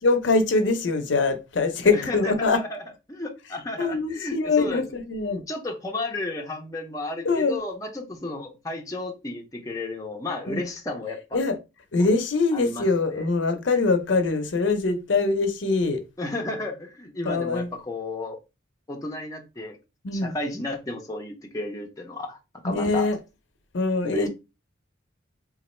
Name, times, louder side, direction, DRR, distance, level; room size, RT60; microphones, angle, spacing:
voice 1, 0.0-2.6 3.8-5.4 7.2-7.6 10.5-10.6 11.3-11.6 11.9-16.0 17.2-17.7 20.0-20.4 22.6-23.2 23.7-24.3, left 3 dB, 65° left, 0.6 m, -23 dB
voice 2, 1.8-4.8 5.5-11.4 12.5-12.9 13.1-13.3 16.2-18.4 18.9-19.8 20.1-22.4 22.6-23.1 24.1-24.3, left 2 dB, 15° left, 0.5 m, -33 dB
3.0 x 2.3 x 4.2 m
head